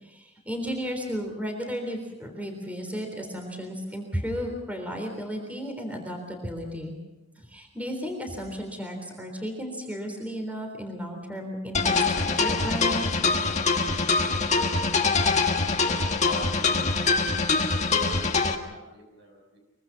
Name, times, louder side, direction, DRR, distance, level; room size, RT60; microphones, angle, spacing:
voice 1, 0.0-7.0 7.5-13.1, equal, 10° right, 3 dB, 3.6 m, -34 dB
sound 1, 11.7-18.5, left 4 dB, 35° left, 1.6 m, -24 dB
voice 2, 16.2-19.6, right 1 dB, 65° right, 2 dB, 6.1 m, -44 dB
24.0 x 24.0 x 5.9 m, 1.1 s
head